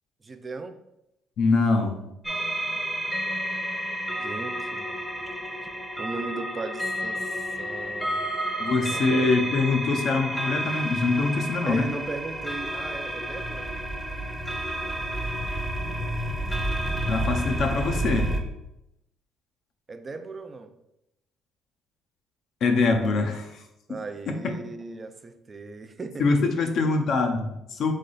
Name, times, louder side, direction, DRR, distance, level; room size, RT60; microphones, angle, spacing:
voice 1, 0.2-0.8 4.2-4.9 6.0-7.3 7.6-8.2 8.8-9.1 11.7-13.7 19.9-20.7 23.9-26.2, right 3 dB, 30° right, 8 dB, 0.4 m, -37 dB
voice 2, 1.4-2.0 8.6-11.9 17.1-18.4 22.6-23.6 24.3-24.5 26.2-27.9, left 3 dB, 60° left, 4 dB, 0.7 m, -24 dB
sound 1, 2.2-18.4, right 1 dB, 5° left, 0.7 m, -30 dB
3.7 x 3.3 x 4.0 m, 0.86 s
supercardioid pair, 80°, 0 cm